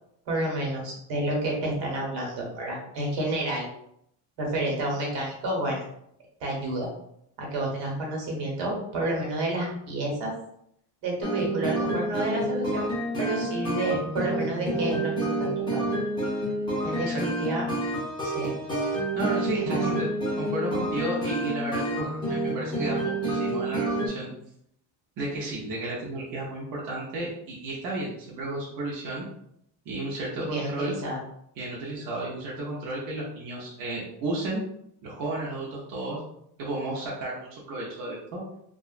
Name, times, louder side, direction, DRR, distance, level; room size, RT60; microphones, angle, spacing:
voice 1, 0.3-3.7 4.4-5.9 6.4-6.9 7.4-10.3 11.0-15.8 16.8-17.7 18.2-18.5 19.5-19.8 30.4-31.2, right 1 dB, 75° right, -2 dB, 1.2 m, -30 dB
sound 1, 11.2-24.1, right 1 dB, 10° left, 0.9 m, -29 dB
voice 2, 19.1-20.1 20.4-24.3 25.2-29.2 29.9-30.9 31.6-34.6 35.0-36.2 36.6-38.4, right 2 dB, 50° right, -5 dB, 0.7 m, -33 dB
2.9 x 2.3 x 2.4 m, 0.73 s
cardioid pair, 150°, 43 cm